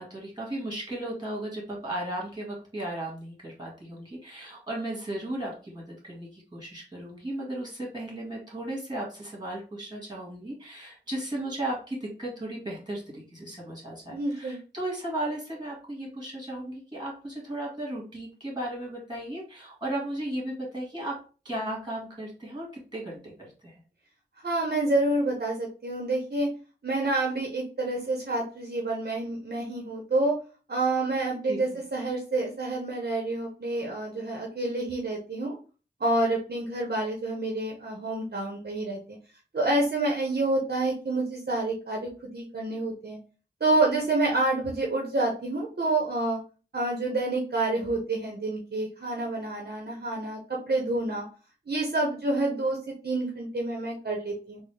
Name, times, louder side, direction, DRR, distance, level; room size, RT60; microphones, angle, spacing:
voice 1, 0.0-21.2 21.5-23.8 31.4-31.6, right 1 dB, 25° right, -2 dB, 1.8 m, -35 dB
voice 2, 14.1-14.6 24.4-26.5 26.8-30.4 30.7-35.6 36.0-39.2 39.5-43.2 43.6-46.4 46.7-51.2 51.7-54.6, right 2 dB, 60° right, -1 dB, 0.7 m, -28 dB
3.9 x 2.0 x 3.2 m, 0.36 s
wide cardioid pair, 60°, 18 cm